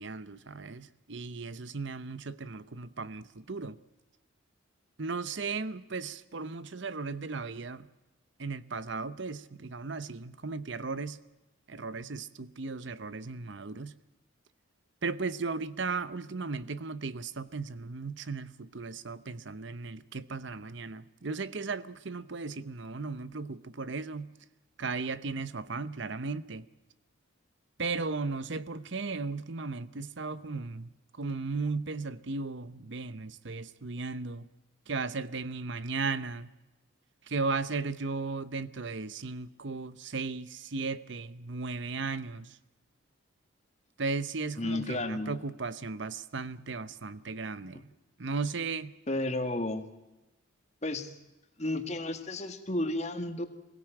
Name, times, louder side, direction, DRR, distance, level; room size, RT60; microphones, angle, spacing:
voice 1, 0.0-3.8 5.0-7.9 8.4-11.2 11.7-13.9 15.0-24.3 24.8-26.7 27.8-30.9 31.2-34.5 34.9-36.5 37.3-42.6 44.0-47.9 48.2-48.9, right 4 dB, 60° right, 0.8 m, -36 dB
voice 2, 44.6-45.4 49.1-49.8 50.8-51.1 51.6-53.5, left 1 dB, 35° left, 1.8 m, -32 dB
23.0 x 17.0 x 8.9 m
head